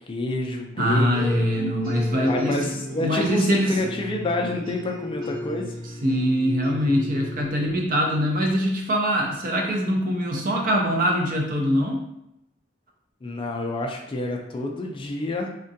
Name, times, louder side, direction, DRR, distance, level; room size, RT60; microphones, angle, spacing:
voice 1, 0.1-1.3 2.3-5.8 13.2-15.5, left 2 dB, 25° left, 1 dB, 0.3 m, -28 dB
voice 2, 0.8-2.6 3.0-3.8 6.0-12.0, equal, 45° right, 0 dB, 0.6 m, -23 dB
sound 1, 1.1-8.7, left 2 dB, 85° right, 1.1 m, -36 dB
3.6 x 2.1 x 2.6 m, 0.83 s
head